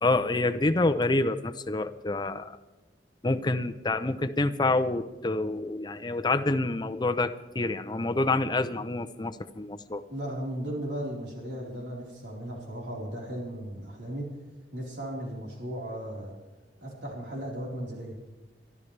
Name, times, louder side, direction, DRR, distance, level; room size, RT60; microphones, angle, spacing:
voice 1, 0.0-2.6 3.2-10.0, left 2 dB, 25° left, 9 dB, 0.6 m, -27 dB
voice 2, 10.1-14.3 14.7-16.3 16.8-18.2, right 1 dB, 80° right, -2 dB, 4.1 m, -36 dB
25.0 x 12.5 x 3.3 m, 1.1 s
head